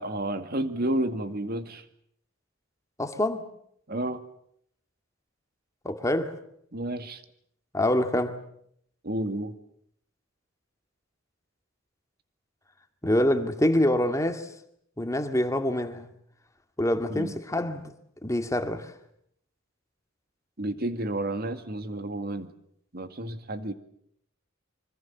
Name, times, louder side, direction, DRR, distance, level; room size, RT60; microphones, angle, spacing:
voice 1, 0.0-1.8 3.9-4.2 6.7-7.2 9.0-9.6 17.1-17.3 20.6-22.5 22.9-23.7, right 1 dB, 50° right, 2.1 m, -31 dB
voice 2, 3.0-3.4 5.8-6.4 7.7-8.3 13.0-14.5 15.0-16.1 16.8-17.8 18.2-18.9, left 1 dB, 15° left, 2.1 m, -25 dB
26.0 x 25.0 x 7.3 m
head